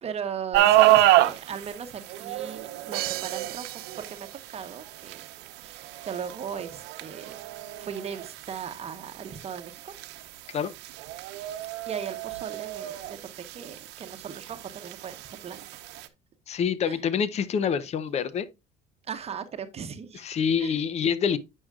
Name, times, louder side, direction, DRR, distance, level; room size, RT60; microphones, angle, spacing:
voice 1, 0.0-5.3 5.6-7.3 7.8-9.9 11.9-15.6 16.8-17.0 19.0-20.2 20.6-20.8, right 7 dB, 35° right, 1.0 m, -38 dB
sound 1, 0.5-16.1, right 15 dB, 85° right, 0.8 m, -28 dB
Crash cymbal, 2.9-4.8, right 17 dB, 65° right, 0.4 m, -36 dB
voice 2, 16.5-18.5 20.2-21.4, left 7 dB, 40° left, 0.7 m, -26 dB
8.7 x 6.4 x 2.3 m
cardioid pair, 125°, 17 cm